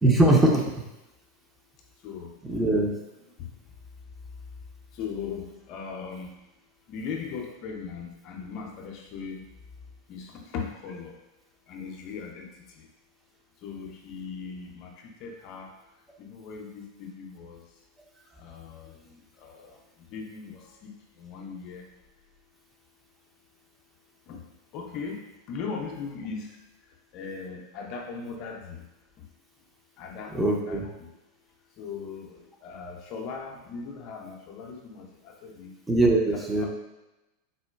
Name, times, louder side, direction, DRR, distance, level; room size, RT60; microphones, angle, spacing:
voice 1, 0.0-0.7 2.4-2.9 30.3-30.9 35.9-36.7, right 1 dB, 10° right, -1 dB, 0.5 m, -21 dB
voice 2, 5.0-6.3 6.9-9.4 10.1-10.2 10.5-11.1 11.7-12.5 13.6-14.9 15.2-15.7 16.2-17.6 18.4-18.9 19.4-19.6 20.1-20.5 20.8-20.9 21.2-21.8 24.3-24.4 24.7-25.2 25.5-26.5 27.1-28.8 30.0-30.8 31.8-32.3 32.6-35.0 35.4-35.7 36.3-36.7, left 5 dB, 45° left, 0 dB, 0.4 m, -38 dB
3.7 x 2.1 x 2.2 m, 1.0 s
figure-of-eight pair, 90°, 0 cm